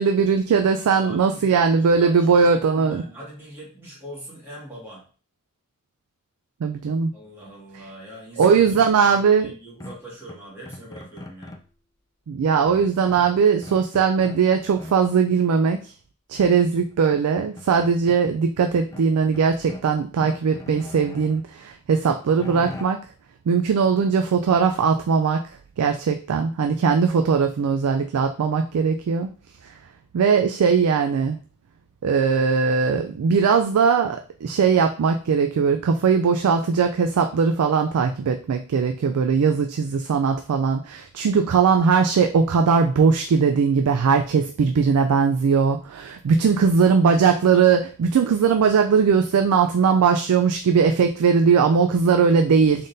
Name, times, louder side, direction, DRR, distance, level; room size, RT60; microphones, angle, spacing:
voice 1, 0.0-3.0 6.6-7.1 8.4-9.5 12.3-15.8 16.3-23.0 23.5-25.4 25.8-29.3 30.1-31.4 32.0-52.9, right 5 dB, 75° right, 5 dB, 0.4 m, -19 dB
voice 2, 0.9-5.1 7.1-11.6 46.3-46.6, right 1 dB, 10° right, -8 dB, 1.7 m, -42 dB
sound 1, 9.8-11.7 12.7-14.4 14.8-15.2 16.5-16.6 16.9-18.2 18.6-19.9 20.2-21.4 21.9-22.8, left 1 dB, 15° left, 0.3 m, -40 dB
3.8 x 3.7 x 2.6 m, 0.39 s
head